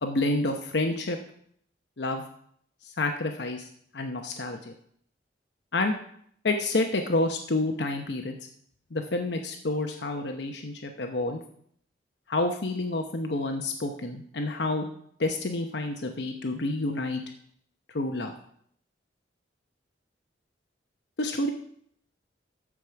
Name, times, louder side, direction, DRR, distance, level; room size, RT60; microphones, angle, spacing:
voice 1, 0.0-1.2 2.0-2.2 3.0-3.7 3.9-4.7 5.7-6.0 6.4-8.3 8.9-11.4 12.3-14.9 15.2-17.2 17.9-18.3 21.2-21.5, left 2 dB, 65° left, 4 dB, 0.9 m, -29 dB
13.5 x 4.9 x 5.8 m, 0.66 s
head